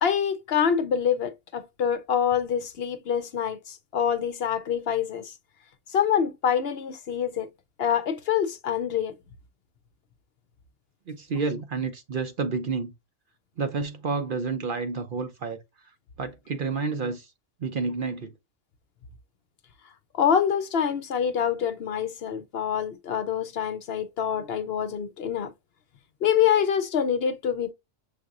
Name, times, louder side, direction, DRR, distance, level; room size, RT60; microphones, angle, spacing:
voice 1, 0.0-5.3 5.9-7.5 7.8-9.1 20.1-25.5 26.2-27.7, left 8 dB, 60° left, 0.8 m, -26 dB
voice 2, 11.1-12.9 13.6-15.6 16.2-17.3 17.6-18.3, right 4 dB, 55° right, 0.7 m, -30 dB
6.4 x 2.9 x 2.4 m
omnidirectional pair, 1.3 m